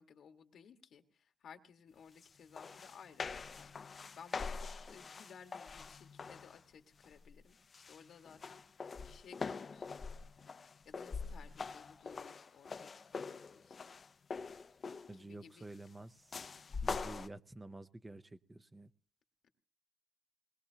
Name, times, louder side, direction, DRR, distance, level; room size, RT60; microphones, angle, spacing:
voice 1, 0.0-7.6 7.9-9.9 10.8-14.0 15.1-15.7 16.5-16.8, left 7 dB, 65° left, 6 dB, 1.6 m, -58 dB
sound 1, 2.2-2.3 2.6-6.6 7.0-7.4 7.7-15.2 16.3-17.3, left 4 dB, 40° left, 0.7 m, -44 dB
voice 2, 15.1-16.4 16.8-18.9, right 2 dB, 15° right, 10 dB, 0.6 m, -50 dB
21.0 x 20.0 x 2.8 m, 0.40 s
cardioid pair, 130°, 0 cm